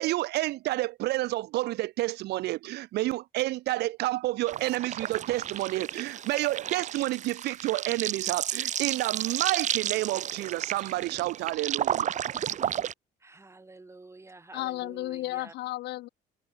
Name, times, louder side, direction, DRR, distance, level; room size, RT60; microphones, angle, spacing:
voice 1, 0.0-12.1, right 17 dB, 80° right, 1.0 m, -30 dB
sound 1, 4.5-12.9, right 10 dB, 45° right, 0.8 m, -32 dB
voice 2, 13.2-15.5, right 3 dB, 15° right, 6.7 m, -49 dB
voice 3, 14.5-16.1, left 17 dB, 80° left, 3.8 m, -33 dB
cardioid pair, 110°, 17 cm